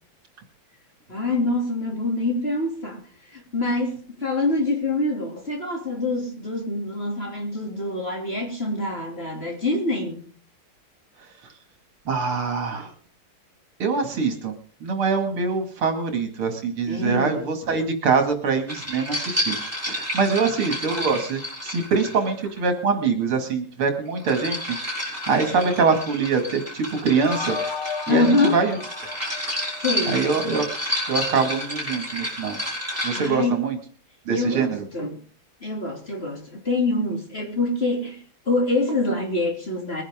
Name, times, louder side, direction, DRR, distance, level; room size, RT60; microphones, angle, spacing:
voice 1, 1.1-3.0 3.3-10.3 16.9-17.5 28.1-28.6 29.8-30.2 33.1-33.6 34.3-35.2 35.6-40.0, left 2 dB, 25° left, 3.2 m, -25 dB
voice 2, 12.1-12.9 13.8-14.5 14.8-19.6 19.9-24.8 25.3-27.6 28.1-28.8 30.0-30.6 31.1-32.6 33.0-33.8 34.3-34.8, right 5 dB, 80° right, 3.2 m, -24 dB
sound 1, 18.7-22.6 23.9-33.4, equal, 5° right, 7.0 m, -30 dB
sound 2, 27.2-30.4, left 5 dB, 80° left, 2.3 m, -34 dB
22.0 x 10.5 x 3.7 m
omnidirectional pair, 2.4 m